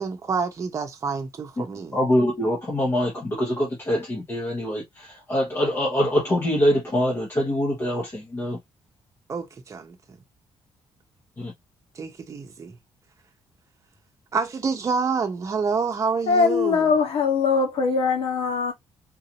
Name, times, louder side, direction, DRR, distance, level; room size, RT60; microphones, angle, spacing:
voice 1, 0.0-2.0 9.3-10.2 11.9-12.8 14.3-16.9, right 5 dB, 30° right, 0.9 m, -28 dB
voice 2, 1.9-8.6 11.4-11.5, equal, 25° left, 1.1 m, -24 dB
voice 3, 16.3-18.7, left 5 dB, 80° left, 1.2 m, -21 dB
3.8 x 2.7 x 2.9 m
cardioid pair, 165°, 10 cm